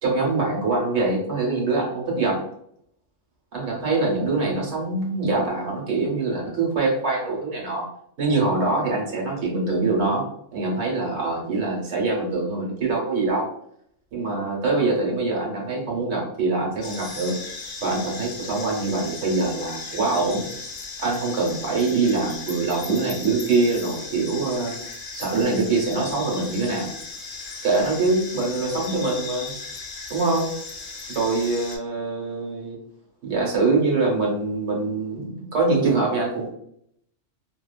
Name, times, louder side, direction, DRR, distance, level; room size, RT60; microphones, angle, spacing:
voice 1, 0.0-2.4 3.5-7.9 8.2-10.3 10.5-13.5 14.1-17.4 17.8-20.5 21.0-24.7 25.1-26.9 27.6-29.5 30.1-30.5 31.1-32.8 33.2-36.5, right 3 dB, 65° right, -2 dB, 1.2 m, -24 dB
sound 1, 16.8-31.8, left 4 dB, 60° left, 0.8 m, -37 dB
2.9 x 2.2 x 2.2 m, 0.70 s
omnidirectional pair, 1.3 m